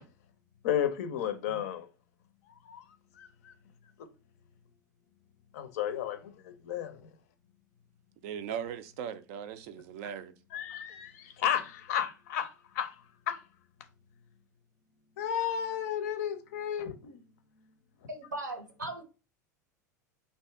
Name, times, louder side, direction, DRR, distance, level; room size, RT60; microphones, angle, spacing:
voice 1, 0.6-1.9 2.5-2.8 3.1-3.5 4.0-4.1 5.5-7.1 10.5-13.0 13.3-13.4 15.2-17.2, left 9 dB, 55° left, 0.5 m, -33 dB
voice 2, 8.2-10.3, right 8 dB, 45° right, 0.4 m, -38 dB
voice 3, 18.1-19.0, right 2 dB, 75° right, 0.8 m, -38 dB
2.7 x 2.3 x 3.4 m
figure-of-eight pair, 80°, 10 cm